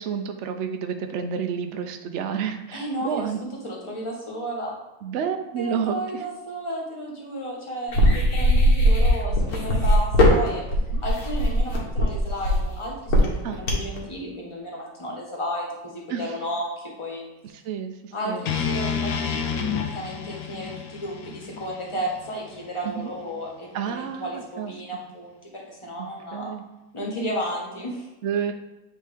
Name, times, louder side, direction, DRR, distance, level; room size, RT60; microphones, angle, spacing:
voice 1, 0.0-3.4 5.0-6.2 10.9-11.0 13.4-13.6 16.1-16.3 17.6-18.4 22.8-23.1 23.7-24.7 26.3-26.6 28.2-28.5, right 7 dB, 85° right, 6 dB, 0.6 m, -30 dB
voice 2, 2.7-4.7 5.6-10.6 11.0-17.3 18.1-26.5 26.9-28.1, equal, 20° left, -3 dB, 1.3 m, -33 dB
sound 1, 7.9-14.0, equal, 60° left, 1.6 m, -20 dB
sound 2, 18.5-22.6, left 6 dB, 85° left, 1.3 m, -29 dB
9.1 x 3.1 x 3.4 m, 1.1 s
omnidirectional pair, 1.8 m